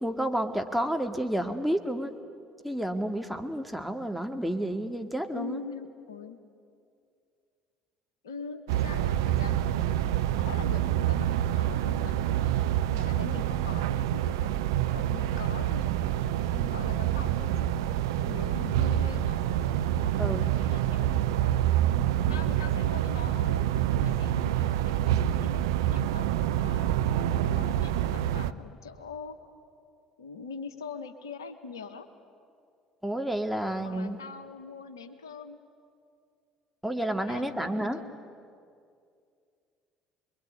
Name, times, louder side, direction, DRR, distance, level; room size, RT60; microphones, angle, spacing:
voice 1, 0.0-2.1 2.6-5.6 20.2-20.4 33.0-34.2 36.8-38.0, right 1 dB, ahead, 5 dB, 2.2 m, -30 dB
voice 2, 5.3-6.4 8.2-12.5 12.9-15.9 16.5-17.9 18.3-19.5 20.1-21.2 21.8-29.4 30.2-32.1 33.8-35.6 37.3-38.1, left 5 dB, 85° left, 8 dB, 1.2 m, -43 dB
sound 1, 8.7-28.5, right 11 dB, 75° right, 0.6 m, -27 dB
26.0 x 22.0 x 9.6 m, 2.3 s
figure-of-eight pair, 55°, 2 cm